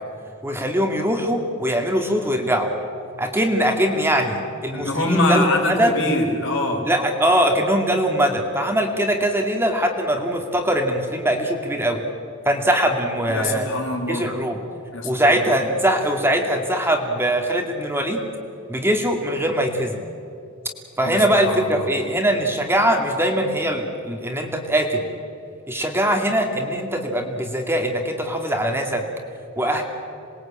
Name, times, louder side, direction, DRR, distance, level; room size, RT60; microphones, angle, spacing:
voice 1, 0.4-2.7 3.2-5.9 6.8-12.0 12.4-13.7 14.1-14.6 15.0-18.2 18.7-20.0 21.0-25.0 25.7-29.1 29.6-29.8, right 1 dB, 10° right, 3 dB, 2.4 m, -21 dB
voice 2, 4.7-6.8 13.3-14.3 14.9-15.5 21.0-21.9, left 1 dB, 65° left, 2 dB, 5.3 m, -24 dB
27.0 x 21.0 x 8.9 m, 2.6 s
head